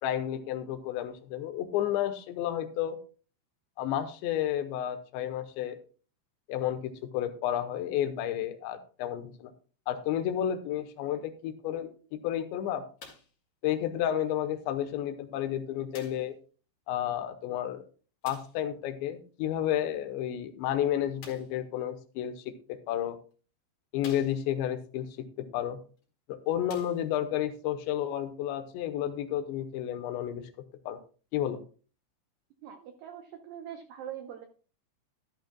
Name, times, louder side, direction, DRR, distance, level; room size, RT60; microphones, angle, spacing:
voice 1, 0.0-3.0 3.8-5.8 6.5-9.5 9.9-12.8 13.6-16.3 16.9-17.8 18.2-22.3 22.9-23.2 23.9-25.8 26.3-30.5 30.9-31.0 31.3-31.6, left 11 dB, 80° left, 8 dB, 3.2 m, -31 dB
sound 1, 13.0-13.4 14.3-14.4 15.9-16.4 18.2-18.6 21.2-21.6 22.6-22.7 23.3-23.4 24.0-24.7 26.0-26.1 26.6-27.3 28.2-28.3, left 5 dB, 50° left, 2.6 m, -50 dB
voice 2, 32.6-34.5, right 10 dB, 80° right, 5 dB, 2.0 m, -43 dB
13.0 x 12.0 x 2.3 m, 0.37 s
omnidirectional pair, 5.2 m